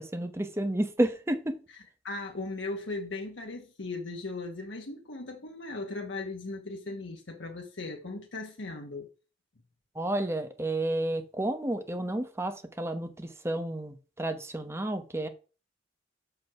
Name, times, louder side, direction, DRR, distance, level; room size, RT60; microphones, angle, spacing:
voice 1, 0.0-1.6 9.9-15.3, right 1 dB, 15° right, 1.0 m, -31 dB
voice 2, 2.0-9.1, left 3 dB, 85° left, 1.2 m, -38 dB
6.2 x 5.5 x 5.8 m
head